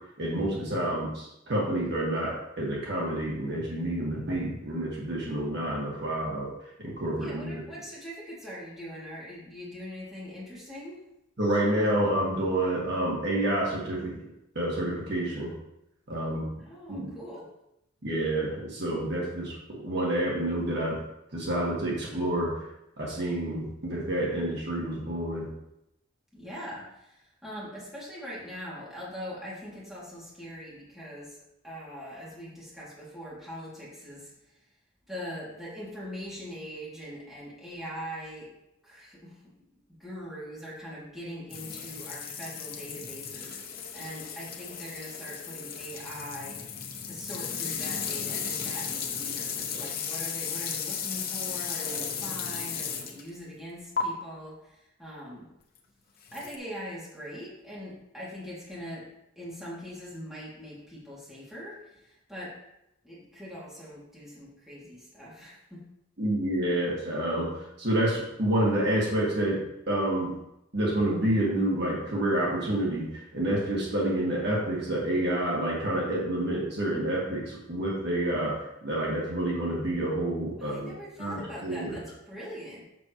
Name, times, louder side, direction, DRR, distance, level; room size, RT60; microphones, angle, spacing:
voice 1, 0.2-6.5 6.8-7.5 11.4-14.1 14.5-15.5 16.1-16.5 16.9-17.1 18.0-21.0 21.3-22.5 23.0-25.5 66.2-67.5 67.8-70.3 70.7-80.9 81.2-82.0, right 1 dB, 50° right, -4 dB, 1.7 m, -28 dB
voice 2, 7.1-11.0 16.6-17.5 26.3-31.4 31.6-34.6 35.1-38.5 38.8-39.4 40.0-46.6 47.0-55.5 56.3-59.1 59.4-62.5 63.0-65.9 80.6-82.8, equal, ahead, -9 dB, 2.4 m, -42 dB
sound 1, 41.5-53.3 54.0-54.1 56.3-56.6, left 7 dB, 45° left, 0.8 m, -35 dB
7.1 x 6.4 x 3.1 m, 0.85 s
head